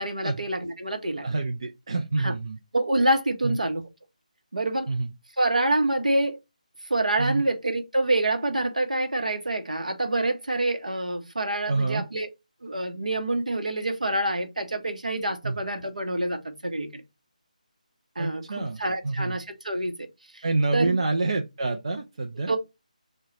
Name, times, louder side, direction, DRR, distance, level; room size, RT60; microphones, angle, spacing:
voice 1, 0.0-1.3 2.2-2.3 2.7-3.8 4.5-4.9 5.4-6.4 6.9-12.3 12.6-17.0 18.2-20.1 20.3-20.4 20.7-21.0 22.5-22.6, right 2 dB, 70° right, 0.8 m, -26 dB
voice 2, 1.2-2.6 3.4-3.6 4.9-5.1 7.2-7.4 11.7-12.1 15.4-15.5 18.2-18.8 19.0-19.4 20.4-22.5, right 3 dB, 45° right, 0.4 m, -27 dB
4.5 x 2.2 x 3.1 m
figure-of-eight pair, 155°, 4 cm